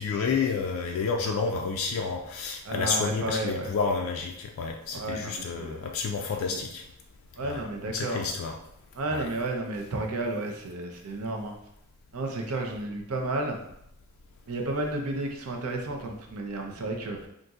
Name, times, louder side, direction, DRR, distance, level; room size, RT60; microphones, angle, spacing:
voice 1, 0.0-6.8 7.4-7.6 7.9-8.5 9.1-9.3, left 5 dB, 65° left, 2 dB, 0.3 m, -30 dB
voice 2, 2.6-3.7 4.9-5.9 6.2-6.6 7.4-8.3 8.9-11.5 12.1-13.6 14.5-17.3, right 2 dB, 80° right, 2 dB, 0.6 m, -32 dB
3.9 x 2.5 x 2.4 m, 0.81 s
head